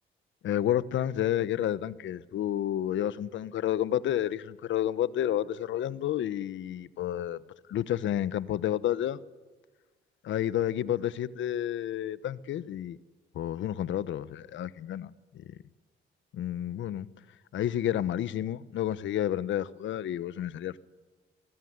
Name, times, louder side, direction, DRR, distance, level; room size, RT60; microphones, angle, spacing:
voice 1, 0.4-7.4 7.7-9.2 10.2-13.0 13.3-15.6 16.3-17.1 17.5-20.8, left 11 dB, 75° left, 1.1 m, -30 dB
25.0 x 19.5 x 9.6 m
cardioid pair, 90°, 20 cm